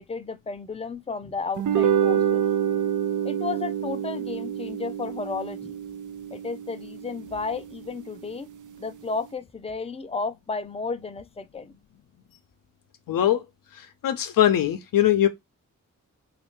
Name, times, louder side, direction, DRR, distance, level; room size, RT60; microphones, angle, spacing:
voice 1, 0.0-2.4 3.2-5.8 6.3-8.5 8.8-11.8, left 4 dB, 20° left, 0.5 m, -33 dB
sound 1, 1.6-8.1, right 9 dB, 65° right, 0.5 m, -27 dB
voice 2, 13.1-13.4 14.0-15.3, left 11 dB, 85° left, 0.6 m, -21 dB
3.2 x 2.5 x 3.0 m
cardioid pair, 50°, 32 cm